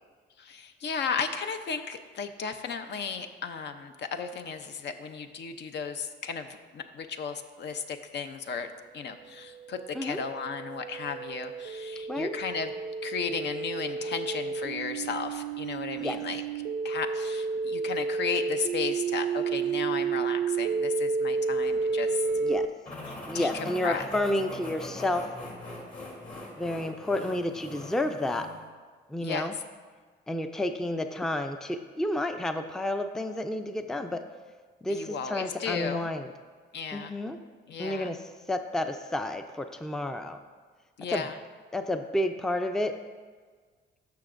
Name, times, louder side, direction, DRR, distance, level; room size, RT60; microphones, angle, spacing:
voice 1, 0.4-6.5 6.7-8.7 8.9-12.7 13.0-16.4 16.8-22.2 23.1-24.0 29.2-29.5 34.9-36.1 36.7-37.1 37.7-38.1 41.0-41.3, left 6 dB, 60° left, 7 dB, 0.6 m, -35 dB
sound 1, 9.4-22.7, right 5 dB, 60° right, 0.5 m, -31 dB
sound 2, 22.8-28.7, left 1 dB, 45° left, 2.3 m, -41 dB
voice 2, 23.3-25.3 26.5-28.5 29.1-29.6 30.3-34.2 34.8-36.3 36.9-37.4 37.8-38.2 38.5-40.4 41.1-41.2 41.7-43.0, left 1 dB, 5° left, 7 dB, 0.4 m, -30 dB
13.0 x 5.7 x 2.5 m, 1.5 s
cardioid pair, 90°, 20 cm